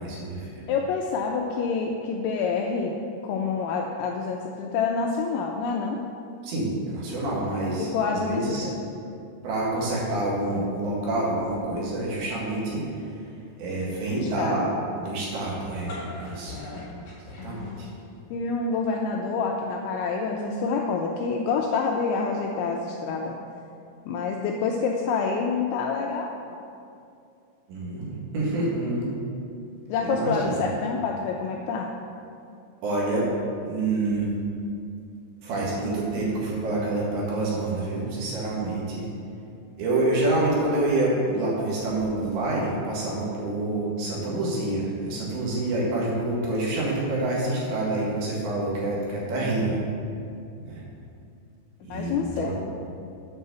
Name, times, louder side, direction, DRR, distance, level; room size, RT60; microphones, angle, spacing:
voice 1, 0.0-0.5 6.4-8.7 9.4-12.8 13.6-14.7 15.0-16.6 17.4-17.9 27.7-29.2 30.0-30.7 32.8-33.3 33.7-34.3 35.4-39.1 39.8-49.8 50.6-50.8 51.8-52.5, right 2 dB, 65° right, -6 dB, 3.7 m, -27 dB
voice 2, 0.7-3.0 3.2-6.0 7.8-8.7 14.1-14.6 17.4-17.9 18.3-23.3 24.1-26.6 29.9-31.9 51.9-52.5, left 5 dB, 85° left, 1 dB, 2.7 m, -27 dB
sound 1, 15.6-18.2, left 2 dB, 45° left, 2.3 m, -40 dB
9.3 x 5.5 x 6.8 m, 2.6 s
omnidirectional pair, 5.9 m